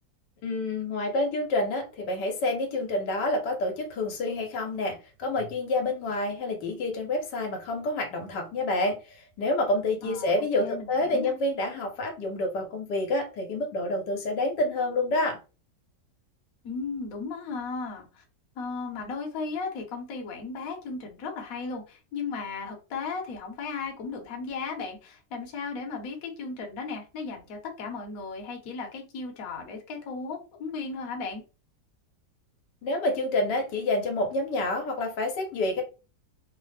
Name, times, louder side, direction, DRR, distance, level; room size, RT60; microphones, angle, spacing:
voice 1, 0.4-15.4 32.8-35.8, left 2 dB, 80° left, 3 dB, 1.4 m, -28 dB
voice 2, 10.0-10.3 10.6-11.3 16.6-18.2 18.6-31.4, left 4 dB, 60° left, 2 dB, 1.1 m, -35 dB
3.2 x 2.0 x 3.2 m, 0.32 s
omnidirectional pair, 1.9 m